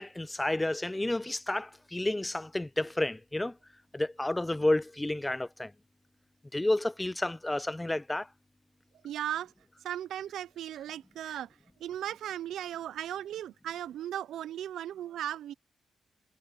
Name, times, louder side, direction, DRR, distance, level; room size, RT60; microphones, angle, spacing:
voice 1, 0.0-3.6 3.9-5.7 6.5-8.3, left 1 dB, 15° left, 0.4 m, -30 dB
voice 2, 9.0-9.5 9.8-11.5 11.8-15.5, right 11 dB, 85° right, 0.4 m, -37 dB
cardioid pair, 70°, 0 cm